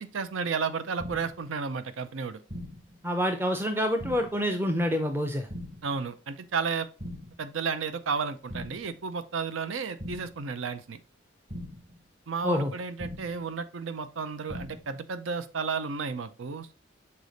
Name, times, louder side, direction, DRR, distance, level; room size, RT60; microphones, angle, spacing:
voice 1, 0.0-2.4 5.8-6.9 7.4-11.0 12.3-16.7, right 5 dB, 75° right, 12 dB, 0.6 m, -32 dB
sound 1, 1.0-1.5 2.5-3.0 4.0-4.5 5.5-6.0 7.0-7.5 8.5-9.0 10.0-10.5 11.5-12.0 13.0-13.5 14.5-15.0, left 1 dB, 30° right, 0.9 m, -40 dB
voice 2, 3.0-5.5 12.4-12.7, equal, 10° right, 5 dB, 0.5 m, -27 dB
6.7 x 4.1 x 4.0 m, 0.34 s
head